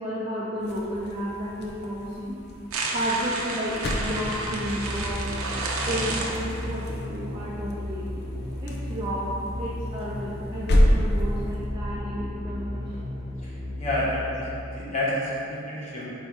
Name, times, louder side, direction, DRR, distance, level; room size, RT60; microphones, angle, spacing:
voice 1, 0.0-2.4 2.9-5.3 5.9-8.2 8.6-13.0, equal, 20° right, -7 dB, 0.6 m, -32 dB
sound 1, 0.6-11.7, equal, 50° left, 0.5 m, -30 dB
sound 2, 2.7-6.9, right 3 dB, 90° right, 0.7 m, -31 dB
sound 3, 4.0-14.7, left 1 dB, 15° left, 0.8 m, -34 dB
voice 2, 13.4-16.1, left 1 dB, 35° left, -7 dB, 1.3 m, -29 dB
4.6 x 4.6 x 4.3 m, 2.7 s
head